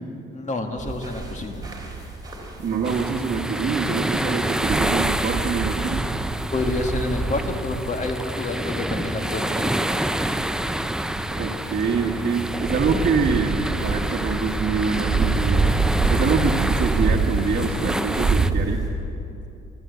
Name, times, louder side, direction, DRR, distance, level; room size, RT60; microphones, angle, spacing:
voice 1, 0.3-1.7 6.5-9.6, left 2 dB, 35° left, 4 dB, 1.8 m, -28 dB
sound 1, 0.8-18.9, right 3 dB, 20° right, 3.9 m, -28 dB
voice 2, 2.6-6.0 11.4-18.8, right 5 dB, 45° right, -2 dB, 1.4 m, -25 dB
sound 2, 2.8-18.5, right 1 dB, 5° right, 0.5 m, -28 dB
14.5 x 12.5 x 7.9 m, 2.8 s
cardioid pair, 90°, 20 cm